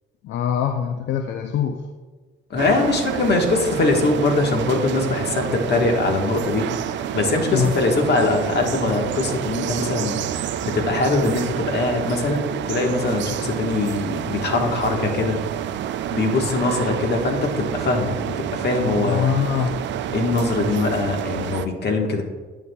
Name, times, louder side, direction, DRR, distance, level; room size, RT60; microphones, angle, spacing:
voice 1, 0.2-1.8 7.5-7.7 19.0-19.8, left 8 dB, 75° left, 6 dB, 0.5 m, -23 dB
voice 2, 2.5-15.4 16.1-19.3 20.1-22.2, left 3 dB, 55° left, 2 dB, 1.3 m, -22 dB
sound 1, 2.6-21.7, right 10 dB, 65° right, 0.4 m, -28 dB
11.0 x 7.3 x 2.2 m, 1.3 s
cardioid pair, 90°, 20 cm